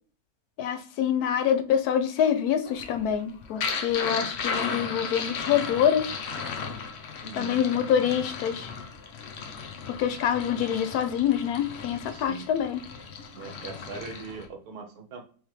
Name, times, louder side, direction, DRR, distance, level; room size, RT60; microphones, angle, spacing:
voice 1, 0.6-6.1 7.3-8.7 10.0-12.8, left 9 dB, 85° left, 8 dB, 1.1 m, -26 dB
sound 1, 2.7-14.5, left 5 dB, 60° left, 0.8 m, -35 dB
voice 2, 7.2-7.6 12.1-12.5 13.3-15.2, right 4 dB, 80° right, 4 dB, 1.4 m, -40 dB
3.6 x 3.4 x 3.1 m, 0.42 s
omnidirectional pair, 1.6 m